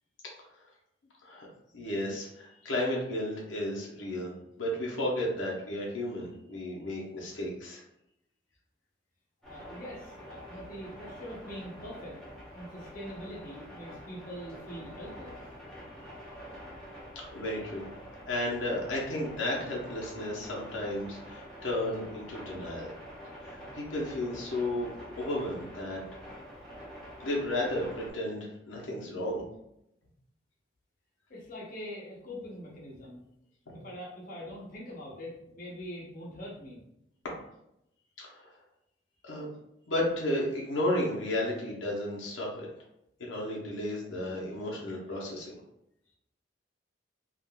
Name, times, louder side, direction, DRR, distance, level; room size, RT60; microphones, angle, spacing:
voice 1, 1.7-4.3 4.6-7.8 16.0-16.1 17.3-17.9 18.3-22.9 23.4-24.9 25.2-26.0 27.2-29.4 33.7-33.8 38.2-38.5 39.2-39.5 39.9-42.7 43.2-45.6, left 1 dB, 80° left, -3 dB, 0.8 m, -33 dB
voice 2, 9.4-12.2 12.5-15.3 31.3-33.2 33.7-36.8, equal, 45° left, -5 dB, 0.7 m, -43 dB
sound 1, 9.4-28.1, equal, 5° left, 0.8 m, -46 dB
3.5 x 2.4 x 2.2 m, 0.81 s
head